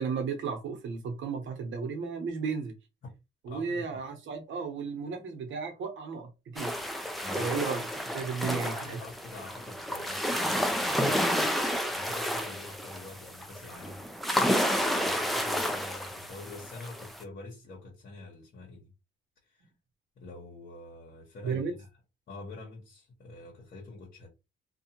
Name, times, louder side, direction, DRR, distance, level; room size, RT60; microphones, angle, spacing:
voice 1, 0.0-2.7 3.4-6.8 7.4-7.8 8.1-9.0 21.4-21.7, right 5 dB, 75° right, 0.9 m, -34 dB
voice 2, 3.5-4.0 7.2-7.6 8.4-14.1 14.6-18.9 19.4-19.7 20.2-21.9 22.3-24.3, left 2 dB, 55° left, 1.2 m, -46 dB
sound 1, 6.6-17.2, equal, ahead, 0.5 m, -31 dB
2.5 x 2.3 x 2.9 m
cardioid pair, 90°, 20 cm